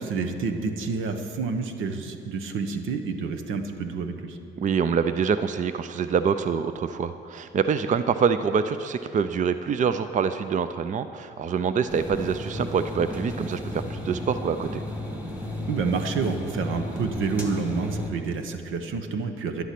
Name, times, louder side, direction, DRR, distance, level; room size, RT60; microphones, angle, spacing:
voice 1, 0.0-4.4 15.7-19.6, right 4 dB, 85° right, 7 dB, 1.0 m, -29 dB
voice 2, 4.6-14.7, right 6 dB, 40° right, 11 dB, 0.5 m, -25 dB
sound 1, 11.9-18.1, left 1 dB, 5° right, 2.2 m, -34 dB
11.5 x 11.5 x 5.9 m, 2.7 s
cardioid pair, 90°, 20 cm